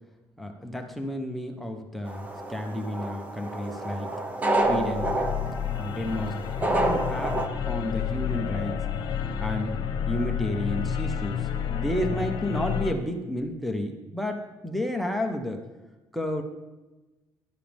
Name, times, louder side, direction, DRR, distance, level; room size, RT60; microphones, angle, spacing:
voice 1, 0.4-4.1 4.7-5.2 5.7-8.8 9.4-9.8 10.1-15.6 16.1-16.4, left 1 dB, ahead, 4 dB, 1.0 m, -31 dB
sound 1, 2.1-7.5, right 2 dB, 20° right, 1.1 m, -29 dB
sound 2, 4.6-12.9, left 8 dB, 60° left, 1.1 m, -30 dB
14.0 x 11.5 x 3.5 m, 1.1 s
cardioid pair, 155°, 8 cm